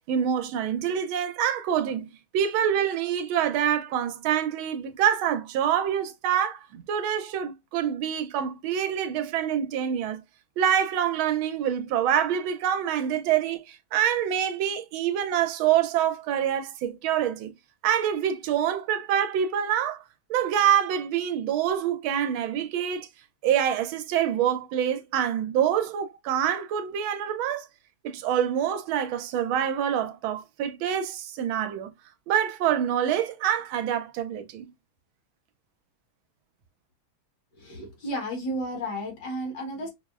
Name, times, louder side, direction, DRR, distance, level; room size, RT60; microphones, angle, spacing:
voice 1, 0.1-2.0 2.3-10.2 10.6-17.5 17.8-20.0 20.3-23.1 23.4-27.7 28.0-31.9 32.3-34.7, right 9 dB, 90° right, 1.4 m, -26 dB
voice 2, 37.6-39.9, equal, 60° left, 1.9 m, -32 dB
5.9 x 2.0 x 2.4 m
omnidirectional pair, 2.2 m